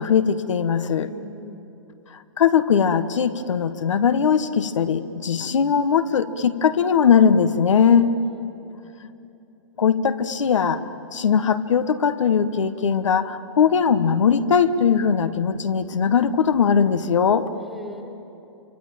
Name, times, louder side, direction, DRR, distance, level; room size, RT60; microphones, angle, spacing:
voice 1, 0.0-1.1 2.4-8.1 9.8-10.8 11.1-17.5, left 7 dB, 80° left, 11 dB, 1.3 m, -20 dB
voice 2, 1.0-1.7 7.7-8.7 17.6-18.1, equal, ahead, 3 dB, 1.8 m, -40 dB
25.5 x 25.5 x 9.1 m, 2.9 s
hypercardioid pair, 160°, 16 cm